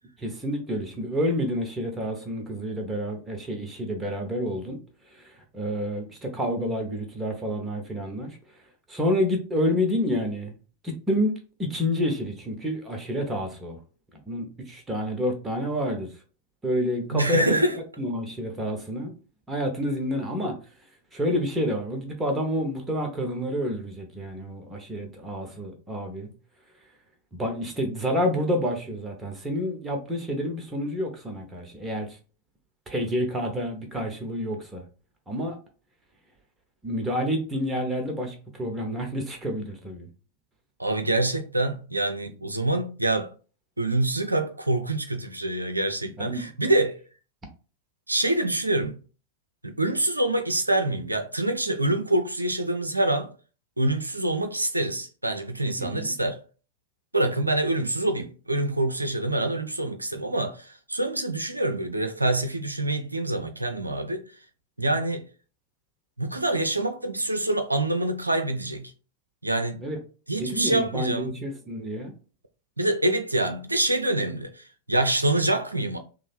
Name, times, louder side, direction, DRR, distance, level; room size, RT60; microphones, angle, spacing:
voice 1, 0.2-4.8 5.1-8.4 8.9-10.5 10.8-11.3 11.6-13.8 14.3-16.1 16.6-17.6 18.0-19.1 19.5-20.5 21.1-26.3 27.3-32.1 32.9-34.8 35.3-35.6 36.8-40.1 46.2-46.4 55.8-56.1 69.8-70.0 70.4-72.1, equal, 15° right, 0.9 m, -29 dB
voice 2, 17.1-17.8 40.8-43.3 43.8-47.0 48.1-49.0 49.6-53.3 53.8-56.4 57.1-64.2 64.8-65.2 66.2-68.9 69.4-69.8 70.3-71.3 72.8-76.0, right 1 dB, 85° right, 0.5 m, -26 dB
3.2 x 2.1 x 4.2 m
figure-of-eight pair, 90°, 0 cm